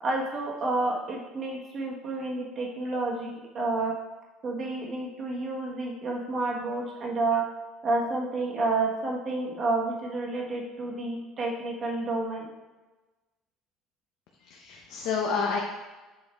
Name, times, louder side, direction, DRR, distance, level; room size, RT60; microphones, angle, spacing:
voice 1, 0.0-3.9 4.4-7.4 7.8-12.5, right 2 dB, 30° right, -1 dB, 1.2 m, -30 dB
voice 2, 14.4-15.6, left 5 dB, 65° left, -1 dB, 0.8 m, -29 dB
7.4 x 4.4 x 3.5 m, 1.2 s
cardioid pair, 175°, 0 cm